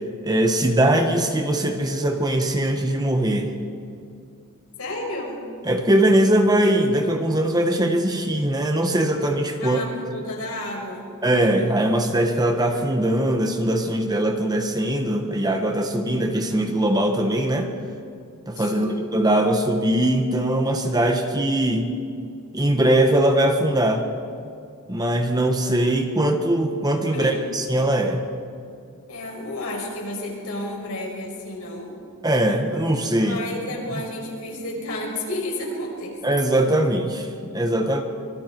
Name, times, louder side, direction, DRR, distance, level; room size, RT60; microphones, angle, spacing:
voice 1, 0.2-3.5 5.6-9.8 11.2-17.7 18.5-21.9 22.5-24.0 24.9-28.3 32.2-33.4 36.2-37.3 37.5-38.0, right 1 dB, 20° right, 4 dB, 1.4 m, -21 dB
voice 2, 4.8-5.4 9.6-11.1 18.6-19.1 27.1-27.4 29.1-32.0 33.2-36.2, left 1 dB, 75° left, 0 dB, 5.7 m, -31 dB
25.5 x 24.5 x 4.7 m, 2.4 s
head